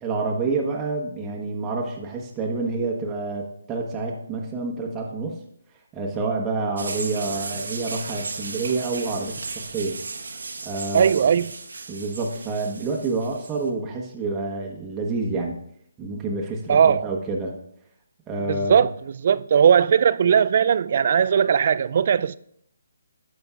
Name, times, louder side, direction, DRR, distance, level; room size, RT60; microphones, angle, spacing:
voice 1, 0.0-5.4 5.9-10.0 10.6-11.3 11.9-15.6 16.0-17.5 18.3-18.9, right 3 dB, 15° right, 1.1 m, -28 dB
sound 1, 6.8-13.7, right 3 dB, 70° right, 1.1 m, -35 dB
voice 2, 10.9-11.5 16.7-17.1 18.5-18.9 19.2-22.4, right 7 dB, 50° right, 0.3 m, -18 dB
15.0 x 5.4 x 2.4 m
figure-of-eight pair, 145°, 0 cm